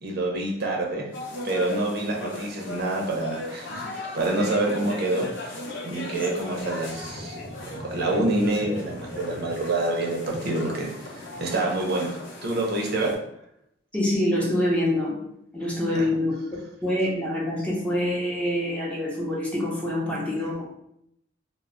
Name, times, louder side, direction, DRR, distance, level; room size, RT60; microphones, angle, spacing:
voice 1, 0.0-1.1 1.4-5.5 5.8-7.4 7.8-10.9 11.1-13.1 15.9-16.1, right 2 dB, 55° right, -1 dB, 0.6 m, -27 dB
sound 1, 1.1-13.1, left 2 dB, 85° left, 0.6 m, -37 dB
voice 2, 13.9-15.2 15.5-16.4 16.8-20.5, left 1 dB, 5° left, -5 dB, 0.6 m, -25 dB
2.1 x 2.0 x 3.6 m, 0.77 s
head